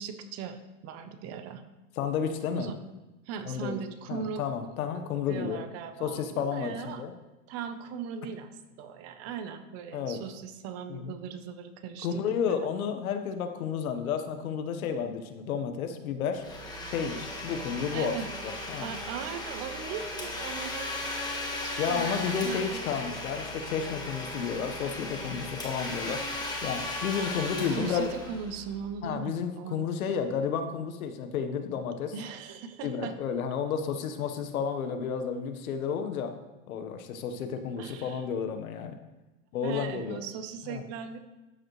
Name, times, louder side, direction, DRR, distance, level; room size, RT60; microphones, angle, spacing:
voice 1, 0.0-1.6 2.5-2.8 3.3-4.4 4.9-7.0 7.5-8.5 8.8-12.7 17.9-18.3 18.8-21.0 21.3-23.2 27.8-29.9 32.1-33.2 37.8-38.2 39.6-41.2, right 7 dB, 35° right, 9 dB, 0.9 m, -39 dB
voice 2, 2.0-2.7 3.5-3.7 4.1-5.6 6.0-7.1 9.9-10.2 10.9-11.1 12.0-16.4 16.9-18.1 18.4-18.9 21.8-26.3 26.6-28.1 29.0-32.1 32.8-36.3 36.7-39.0 39.5-40.2 40.7-40.8, left 7 dB, 80° left, 7 dB, 1.4 m, -31 dB
Domestic sounds home sounds, 16.3-28.9, left 1 dB, 10° left, 1.6 m, -36 dB
12.5 x 7.7 x 3.2 m, 1.1 s
supercardioid pair, 140°, 41 cm